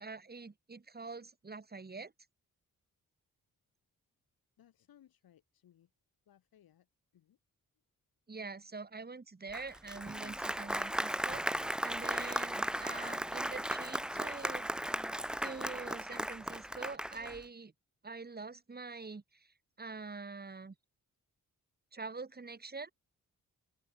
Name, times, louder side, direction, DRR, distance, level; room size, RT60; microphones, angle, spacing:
voice 1, 0.0-2.1 8.3-14.7 15.4-17.7 18.0-20.7 21.9-22.9, right 4 dB, 25° right, 1.7 m, -45 dB
voice 2, 4.6-5.9 6.3-6.9 7.1-7.4, left 11 dB, 90° left, 2.3 m, -64 dB
Applause, 9.5-17.4, right 1 dB, ahead, 0.4 m, -36 dB
open air
cardioid pair, 65°, 35 cm